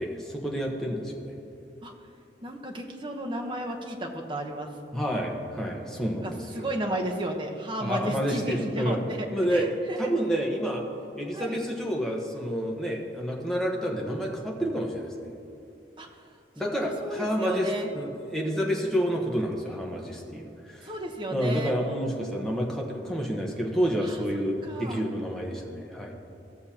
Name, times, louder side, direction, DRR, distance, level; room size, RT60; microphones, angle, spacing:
voice 1, 0.0-1.3 4.9-6.7 7.8-9.0 9.3-9.7 10.0-10.8 11.2-15.3 16.6-17.7 17.9-20.9 21.3-26.1, equal, 5° left, -1 dB, 1.1 m, -29 dB
voice 2, 2.4-4.7 6.2-10.1 11.3-11.6 16.0-16.1 16.6-17.9 20.8-21.7 24.0-25.0, right 1 dB, 30° right, 0 dB, 1.0 m, -34 dB
17.0 x 6.6 x 2.9 m, 2.8 s
head